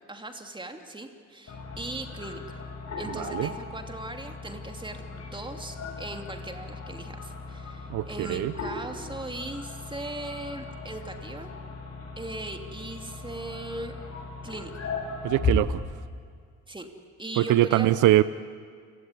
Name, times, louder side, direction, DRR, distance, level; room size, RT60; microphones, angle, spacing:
voice 1, 0.1-2.6 3.0-11.5 12.2-14.0 14.4-14.9 16.7-16.9 17.2-18.0, right 2 dB, 15° right, 5 dB, 2.9 m, -39 dB
sound 1, 1.5-15.5, left 4 dB, 55° left, 7.3 m, -37 dB
voice 2, 3.1-3.5 7.9-8.5 15.2-15.8 17.4-18.2, right 15 dB, 85° right, 15 dB, 0.7 m, -23 dB
29.5 x 17.0 x 9.9 m, 2.1 s
cardioid pair, 90°, 30 cm